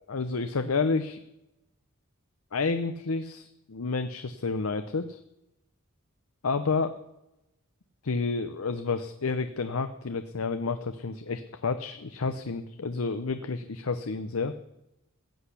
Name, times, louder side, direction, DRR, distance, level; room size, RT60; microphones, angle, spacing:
voice 1, 0.1-1.2 2.5-5.2 6.4-7.0 8.0-14.6, left 4 dB, 80° left, 10 dB, 0.7 m, -30 dB
15.5 x 8.1 x 8.4 m, 0.91 s
head